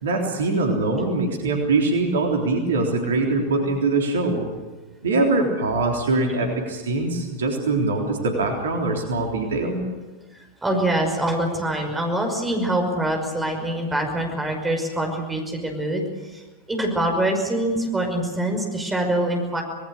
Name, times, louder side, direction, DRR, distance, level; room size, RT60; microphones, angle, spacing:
voice 1, 0.0-4.5 5.0-9.8, right 3 dB, 65° right, 2 dB, 3.6 m, -23 dB
voice 2, 10.6-16.4 16.7-19.6, right 1 dB, 10° right, 3 dB, 5.6 m, -24 dB
26.5 x 19.5 x 6.7 m, 1.3 s
figure-of-eight pair, 90°, 0 cm